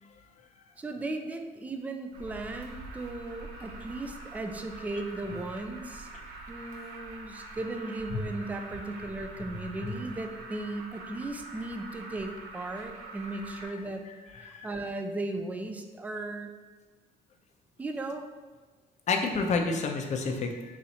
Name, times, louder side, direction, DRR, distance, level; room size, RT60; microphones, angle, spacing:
voice 1, 0.8-6.1 6.5-14.0 14.4-16.5 17.8-18.3, right 2 dB, 10° right, 5 dB, 0.3 m, -36 dB
Alarm, 2.1-13.7, right 3 dB, 70° right, 0.8 m, -45 dB
voice 2, 14.0-14.7 19.1-20.8, left 4 dB, 45° left, 4 dB, 0.6 m, -30 dB
4.1 x 2.5 x 4.2 m, 1.4 s
cardioid pair, 110°, 17 cm